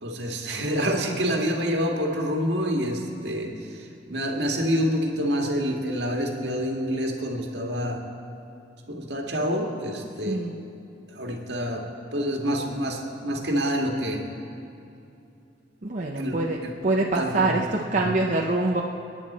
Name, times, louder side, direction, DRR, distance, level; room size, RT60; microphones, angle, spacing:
voice 1, 0.0-8.0 8.9-10.4 11.1-14.3 16.2-16.7 17.1-17.6 17.9-18.1, equal, 70° right, 1 dB, 1.9 m, -27 dB
voice 2, 15.8-18.8, right 2 dB, 45° right, -1 dB, 0.8 m, -25 dB
28.0 x 10.0 x 4.3 m, 2.8 s
head